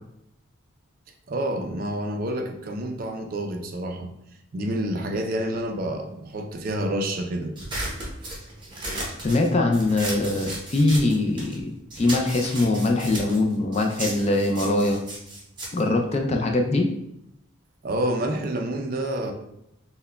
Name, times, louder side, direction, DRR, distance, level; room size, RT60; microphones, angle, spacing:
voice 1, 1.3-4.1 4.5-7.5 17.8-19.3, right 1 dB, 45° right, 4 dB, 0.4 m, -28 dB
sound 1, 7.6-11.6 11.9-16.7, right 1 dB, 20° right, 0.8 m, -35 dB
voice 2, 9.2-15.0 15.7-16.9, left 2 dB, 30° left, 3 dB, 0.3 m, -22 dB
5.7 x 2.1 x 2.2 m, 0.80 s
head